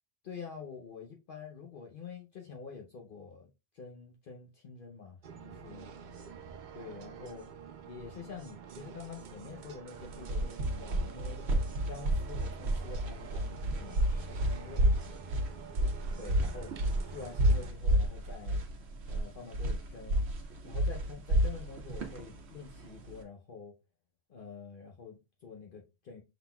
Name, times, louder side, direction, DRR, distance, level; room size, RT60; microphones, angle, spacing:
voice 1, 0.2-3.5 3.7-5.2 5.4-5.9 6.7-7.4 7.9-11.4 11.8-15.0 16.2-16.7 17.0-18.6 19.1-20.2 20.6-23.7 24.3-26.2, left 5 dB, 55° left, 0.8 m, -47 dB
sound 1, 5.2-17.7, right 6 dB, 55° right, 0.6 m, -48 dB
sound 2, 9.9-23.2, right 1 dB, 80° right, 1.0 m, -30 dB
5.7 x 3.9 x 2.2 m
omnidirectional pair, 1.1 m